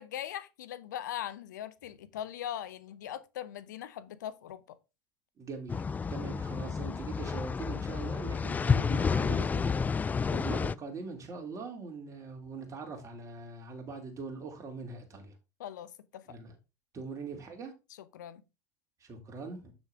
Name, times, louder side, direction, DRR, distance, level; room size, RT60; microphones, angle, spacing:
voice 1, 0.0-4.8 15.6-16.4 17.9-18.4, left 11 dB, 80° left, 0.6 m, -40 dB
voice 2, 5.4-15.3 16.3-16.5 16.9-17.7 19.0-19.7, right 4 dB, 30° right, 2.8 m, -42 dB
sound 1, 5.7-10.7, left 5 dB, 15° left, 0.3 m, -30 dB
7.2 x 6.2 x 3.5 m
hypercardioid pair, 85°, 10 cm